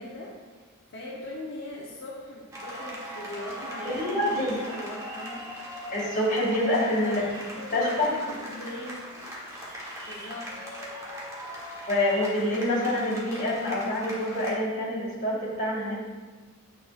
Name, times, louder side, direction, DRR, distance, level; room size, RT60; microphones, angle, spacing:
voice 1, 0.0-5.5 7.0-9.2 10.0-10.6, left 1 dB, 55° left, -5 dB, 0.9 m, -40 dB
sound 1, 2.5-14.5, equal, 15° right, 1.4 m, -39 dB
voice 2, 3.9-4.6 5.9-7.2 7.7-8.1 11.9-16.0, left 1 dB, 40° left, -5 dB, 2.2 m, -26 dB
9.5 x 6.5 x 2.5 m, 1.4 s
head